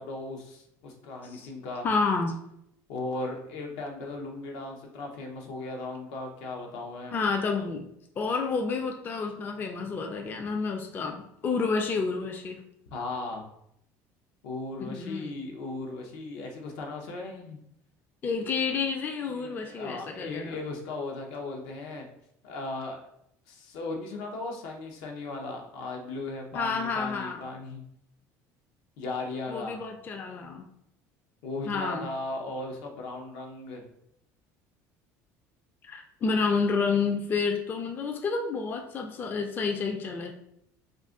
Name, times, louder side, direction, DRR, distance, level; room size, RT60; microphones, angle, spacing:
voice 1, 0.0-1.9 2.9-7.2 12.9-13.4 14.4-17.6 19.3-22.1 22.4-23.0 23.5-27.8 29.0-29.8 31.4-33.8, left 2 dB, 80° left, 1 dB, 0.7 m, -37 dB
voice 2, 1.8-2.4 7.1-7.9 8.2-12.6 14.8-15.4 18.2-20.6 26.5-27.4 29.5-30.6 31.7-32.1 35.9-40.3, left 4 dB, 30° left, 3 dB, 0.3 m, -29 dB
2.5 x 2.4 x 3.6 m, 0.74 s
cardioid pair, 130°, 7 cm